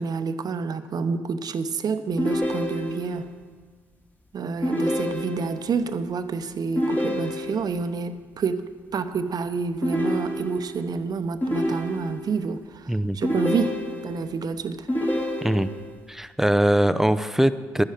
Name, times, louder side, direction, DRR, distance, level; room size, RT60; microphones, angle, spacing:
voice 1, 0.0-3.3 4.3-14.9, right 5 dB, 55° right, 10 dB, 0.8 m, -28 dB
sound 1, 2.2-3.2 4.6-5.7 6.8-7.8 9.8-10.8 11.4-12.4 13.2-14.3 14.9-15.9, equal, 25° left, 2.4 m, -27 dB
voice 2, 16.1-17.8, right 1 dB, 5° right, 13 dB, 0.6 m, -21 dB
11.5 x 10.5 x 5.0 m, 1.5 s
supercardioid pair, 65°, 8 cm